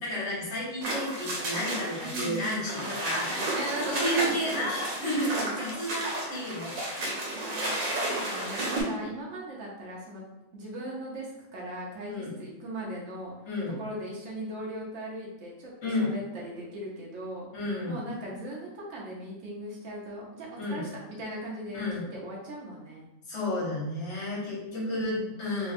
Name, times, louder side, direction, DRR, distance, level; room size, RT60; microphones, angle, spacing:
voice 1, 0.0-6.8 12.1-12.3 13.4-13.8 15.8-16.1 17.5-18.0 20.6-20.8 21.7-22.0 23.3-25.7, left 1 dB, 60° left, -5 dB, 1.5 m, -32 dB
sound 1, 0.8-8.8, right 1 dB, 85° right, 1.4 m, -32 dB
voice 2, 2.0-2.9 3.5-4.7 7.4-10.2 10.5-13.3 13.8-17.5 17.9-21.8 22.1-23.1 24.6-25.3, right 1 dB, 70° right, -4 dB, 1.2 m, -38 dB
3.4 x 2.4 x 4.1 m, 0.93 s
omnidirectional pair, 1.4 m